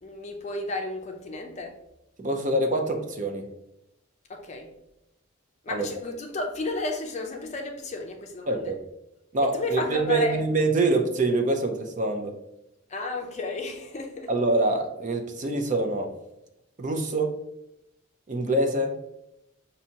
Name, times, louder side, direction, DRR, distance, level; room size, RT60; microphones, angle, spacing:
voice 1, 0.0-1.8 4.3-4.7 5.6-8.7 9.4-10.4 12.9-14.3, left 2 dB, 35° left, 0.5 m, -32 dB
voice 2, 2.2-3.4 5.7-5.9 8.5-8.8 9.3-12.3 14.3-16.1 16.8-17.4 18.3-18.9, right 2 dB, 40° right, 0.5 m, -25 dB
5.5 x 2.7 x 2.8 m
head